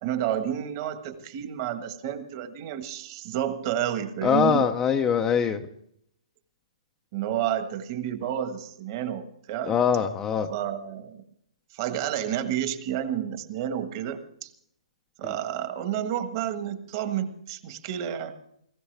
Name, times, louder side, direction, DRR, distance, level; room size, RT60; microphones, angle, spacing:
voice 1, 0.0-4.7 7.1-9.7 10.5-11.2 11.7-14.5 15.2-18.4, right 10 dB, 30° right, 8 dB, 1.5 m, -30 dB
voice 2, 4.2-5.6 9.7-10.5, left 7 dB, 10° left, 5 dB, 0.6 m, -23 dB
20.0 x 16.5 x 3.4 m, 0.71 s
hypercardioid pair, 160°, 4 cm